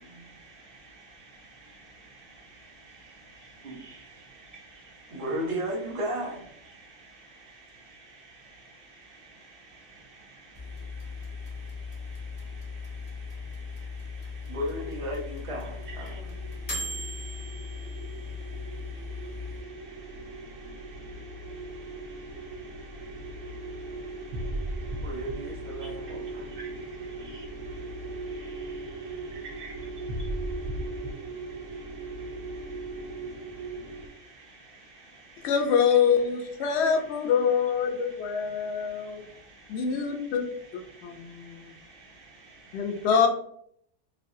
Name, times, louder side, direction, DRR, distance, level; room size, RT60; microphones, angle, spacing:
voice 1, 0.0-3.4 3.6-5.2 6.7-14.6 15.9-25.3 25.8-35.5 36.6-37.3 37.9-43.1, right 3 dB, 50° right, -1 dB, 0.9 m, -52 dB
voice 2, 3.8-4.1 5.1-6.5 14.5-16.3 25.0-26.6 28.2-29.6, equal, 35° right, -2 dB, 0.6 m, -35 dB
sound 1, 10.6-19.6, left 3 dB, 25° left, 0.6 m, -38 dB
sound 2, 15.7-34.1, right 2 dB, 85° right, 1.1 m, -38 dB
voice 3, 35.4-39.2 39.7-40.4 41.0-41.5 42.7-43.3, left 6 dB, 65° left, 4 dB, 0.8 m, -25 dB
3.2 x 2.3 x 2.6 m, 0.69 s
omnidirectional pair, 1.3 m